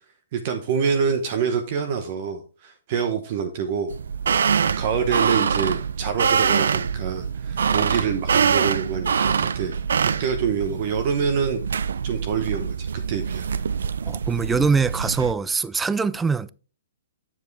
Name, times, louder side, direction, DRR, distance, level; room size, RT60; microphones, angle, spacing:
voice 1, 0.3-3.9 4.8-9.8 10.0-11.6 12.0-13.6, right 6 dB, 40° right, 0.9 m, -26 dB
sound 1, 3.9-15.3, right 6 dB, 80° right, 0.4 m, -24 dB
voice 2, 14.1-16.5, right 5 dB, 10° right, 0.3 m, -23 dB
7.4 x 7.3 x 3.3 m
hypercardioid pair, 155°, 0 cm